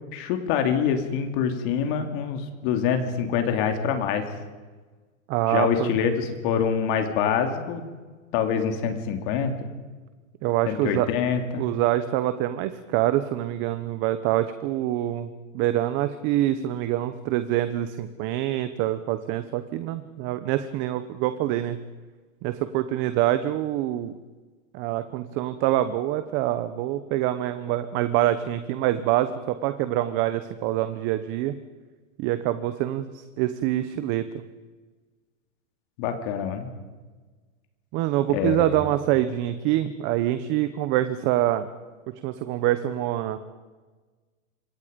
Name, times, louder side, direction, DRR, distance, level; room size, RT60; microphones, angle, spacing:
voice 1, 0.1-4.2 5.5-7.8 8.3-9.5 10.7-11.6 36.0-36.7 38.3-38.7, left 7 dB, 40° left, 6 dB, 2.9 m, -25 dB
voice 2, 5.3-5.9 10.4-11.1 11.6-21.8 22.4-24.1 24.7-31.5 32.2-34.4 37.9-41.6 42.2-43.4, right 13 dB, 30° right, 11 dB, 1.1 m, -25 dB
27.0 x 23.5 x 5.3 m, 1.3 s
hypercardioid pair, 150°, 39 cm